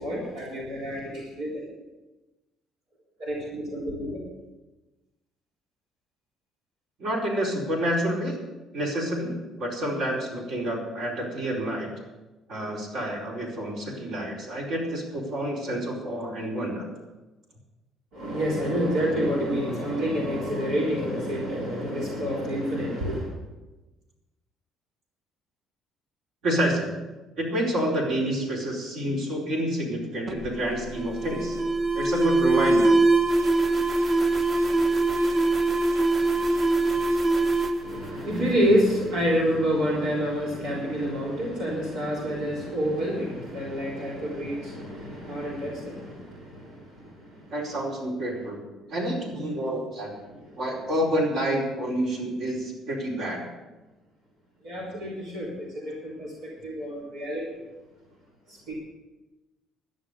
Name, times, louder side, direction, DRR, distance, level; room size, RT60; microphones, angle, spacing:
voice 1, 0.0-1.7 3.2-4.2 18.1-23.3 37.8-47.5 50.2-50.6 54.6-57.5 58.5-58.7, equal, 90° right, -5 dB, 3.6 m, -28 dB
voice 2, 7.0-8.4 8.7-11.9 12.5-16.9 26.4-26.9 27.4-31.6 31.9-32.9 47.5-48.6 48.9-50.1 50.6-53.4, right 1 dB, 70° right, -2 dB, 4.6 m, -28 dB
Alarm, 30.3-38.9, right 2 dB, 45° right, 1.6 m, -23 dB
12.0 x 10.0 x 6.8 m, 1.1 s
cardioid pair, 95°, 0 cm